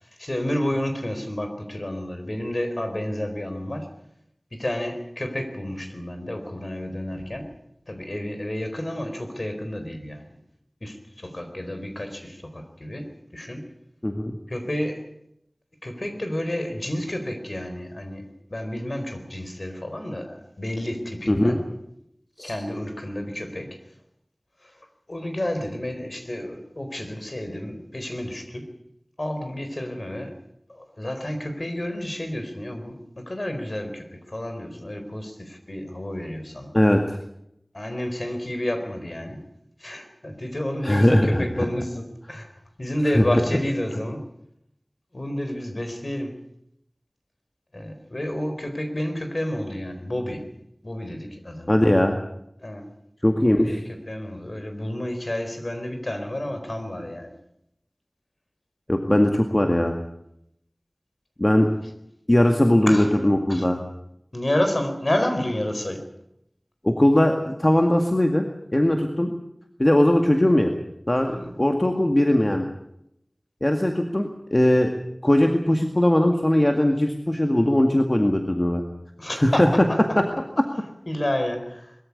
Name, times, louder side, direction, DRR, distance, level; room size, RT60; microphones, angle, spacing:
voice 1, 0.2-3.9 4.5-7.5 7.9-10.4 10.8-13.7 14.5-15.1 15.8-21.6 22.4-23.8 24.6-24.8 25.1-28.7 29.2-30.3 30.7-36.8 37.7-39.4 39.8-42.5 42.8-44.2 45.1-46.4 47.7-50.5 50.8-51.8 52.6-52.9 53.4-57.3 62.9-63.7 64.3-66.1 71.2-71.6 79.2-80.0 81.1-82.0, left 1 dB, 55° left, 6 dB, 4.4 m, -30 dB
voice 2, 14.0-14.3 21.3-21.6 22.4-22.5 36.7-37.2 40.8-41.4 43.1-43.2 51.7-52.2 53.2-53.8 58.9-60.0 61.4-61.7 62.3-63.8 66.8-68.5 68.7-69.3 69.8-70.7 71.1-72.7 73.6-74.9 75.2-78.8 79.4-79.7, left 1 dB, 35° left, 4 dB, 2.1 m, -19 dB
22.0 x 14.0 x 9.7 m, 0.79 s
wide cardioid pair, 45°, 0 cm